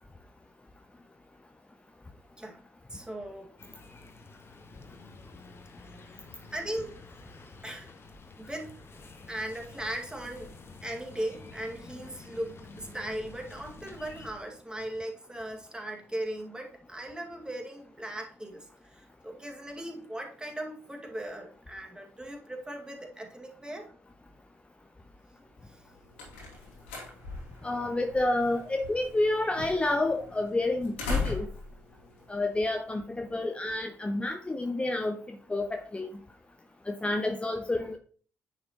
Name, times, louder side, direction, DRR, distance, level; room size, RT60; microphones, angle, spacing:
voice 1, 2.9-3.5 5.8-6.2 6.5-7.0 7.6-7.9 8.4-8.7 9.3-10.5 10.8-23.9 25.7-25.8, right 1 dB, 10° right, 2.2 m, -38 dB
sound 1, 3.6-14.3, left 3 dB, 35° left, 1.5 m, -50 dB
open door knob step out close door, 25.7-33.1, left 4 dB, 75° left, 2.5 m, -39 dB
voice 2, 27.6-31.5 32.3-36.1 36.9-38.0, left 2 dB, 15° left, 0.8 m, -29 dB
9.8 x 6.5 x 3.0 m
figure-of-eight pair, 40°, 7 cm